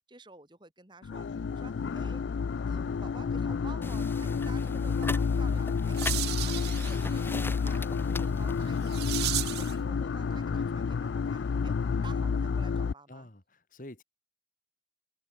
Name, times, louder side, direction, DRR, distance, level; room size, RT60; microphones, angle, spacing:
voice 1, 0.1-2.2 2.5-13.3, right 3 dB, 25° right, 2.9 m, -51 dB
sound 1, 1.0-12.9, left 5 dB, 80° left, 0.4 m, -30 dB
sound 2, 3.8-9.0, left 2 dB, 10° left, 2.0 m, -41 dB
sound 3, 5.4-9.8, right 17 dB, 60° right, 0.4 m, -37 dB
voice 2, 13.1-14.0, left 1 dB, 45° left, 2.3 m, -47 dB
head